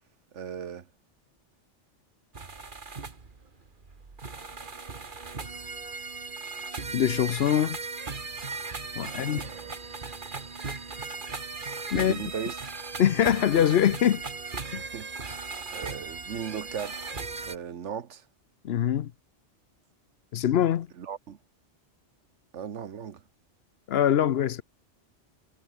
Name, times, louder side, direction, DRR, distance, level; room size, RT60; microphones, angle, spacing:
voice 1, 0.3-0.9 9.0-9.8 11.9-12.6 14.8-17.1 17.4-18.2 21.0-21.4 22.5-23.2, right 8 dB, 85° right, 1.4 m, -38 dB
sound 1, 2.3-17.6, right 4 dB, 45° right, 1.9 m, -37 dB
voice 2, 6.9-7.8 9.0-9.4 11.9-12.1 13.0-14.2 14.7-14.8 18.6-19.1 20.3-20.9 23.9-24.6, left 10 dB, 65° left, 0.9 m, -23 dB
omnidirectional pair, 1.2 m